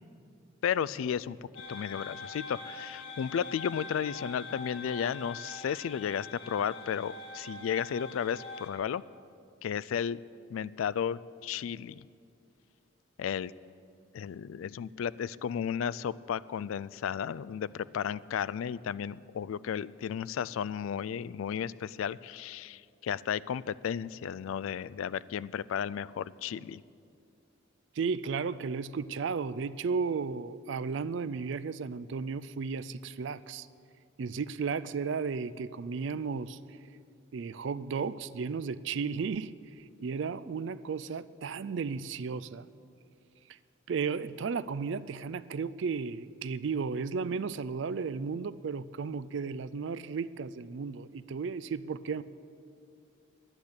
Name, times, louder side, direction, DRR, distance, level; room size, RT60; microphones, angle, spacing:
voice 1, 0.6-1.4 1.7-9.0 9.6-10.2 10.5-12.1 13.2-13.5 14.1-26.8, left 8 dB, 80° left, 18 dB, 0.3 m, -33 dB
sound 1, 1.5-8.7, left 3 dB, 60° left, 2.1 m, -44 dB
voice 2, 28.0-33.7 34.2-36.6 37.3-42.7 43.9-52.2, right 5 dB, 65° right, 16 dB, 0.4 m, -34 dB
10.5 x 10.0 x 8.0 m, 2.4 s
head